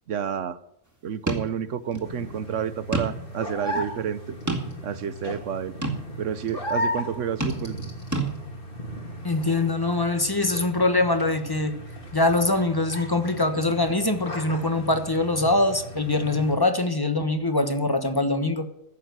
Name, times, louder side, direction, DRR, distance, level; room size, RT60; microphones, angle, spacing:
voice 1, 0.1-0.6 1.0-4.4 4.8-5.7 6.2-7.8, right 8 dB, 75° right, 14 dB, 1.2 m, -30 dB
sound 1, 1.3-1.5 1.9-2.0 2.9-3.3 3.7-3.8 4.5-5.0 5.8-6.0 7.4-7.9 8.1-8.3, right 2 dB, 15° right, 2.1 m, -28 dB
sound 2, 2.0-16.5, equal, 45° left, 2.9 m, -36 dB
voice 2, 9.2-11.8 12.1-18.7, left 2 dB, 20° left, 8 dB, 1.2 m, -23 dB
15.0 x 7.1 x 9.3 m, 0.80 s
omnidirectional pair, 1.3 m